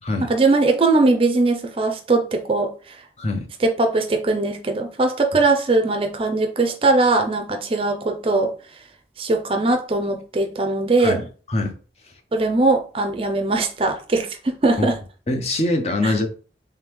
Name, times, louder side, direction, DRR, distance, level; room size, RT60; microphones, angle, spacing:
voice 1, 0.2-2.7 3.6-8.5 9.2-11.2 12.3-15.0 16.0-16.1, right 3 dB, 30° right, 0.4 m, -20 dB
voice 2, 11.0-11.7 14.8-14.9 15.3-16.3, left 2 dB, 35° left, 0.6 m, -23 dB
3.6 x 3.2 x 3.1 m
head